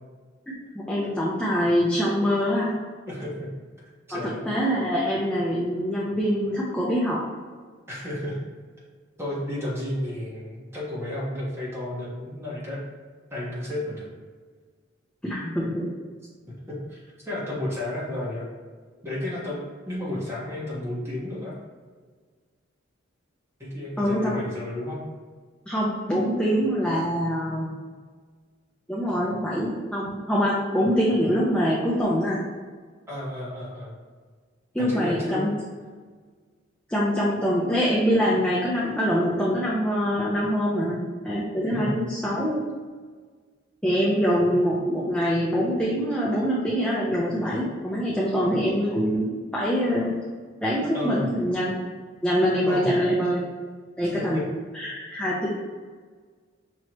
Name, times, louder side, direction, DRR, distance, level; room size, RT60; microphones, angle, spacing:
voice 1, 0.9-2.7 4.1-7.3 15.2-15.9 24.0-24.3 25.7-27.7 28.9-32.4 34.7-35.5 36.9-41.0 41.2-42.6 43.8-49.3 49.5-50.1 50.6-51.8 52.2-53.4 54.0-54.4 54.7-55.5, equal, 5° left, -7 dB, 0.6 m, -24 dB
voice 2, 3.1-3.5 4.1-4.4 7.9-8.4 9.2-12.8 13.3-14.1 16.7-18.5 19.0-19.6 19.9-21.5 23.6-25.1 33.1-34.0 34.8-35.4 41.7-41.9 50.9-51.3 52.7-52.9 54.0-54.4 55.1-55.2, left 1 dB, 15° right, -7 dB, 1.4 m, -32 dB
5.8 x 3.1 x 3.0 m, 1.5 s
head